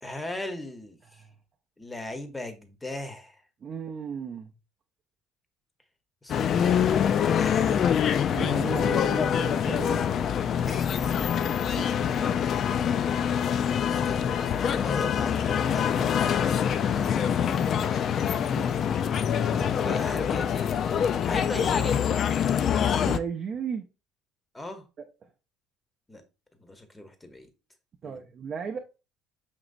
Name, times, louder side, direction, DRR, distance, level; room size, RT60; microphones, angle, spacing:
voice 1, 0.0-1.2 1.8-3.4 6.2-7.9 10.7-11.3 13.9-16.4 16.7-17.6 19.5-20.8 21.2-22.0 24.5-24.8 26.1-26.2 26.6-27.5 28.0-28.2, left 2 dB, 15° left, 0.7 m, -38 dB
voice 2, 3.6-4.5 8.3-10.1 18.5-18.8 23.0-23.9 28.0-28.8, right 6 dB, 40° right, 0.5 m, -35 dB
sound 1, 6.3-23.2, left 8 dB, 45° left, 0.3 m, -25 dB
5.2 x 2.9 x 2.5 m
cardioid pair, 115°, 0 cm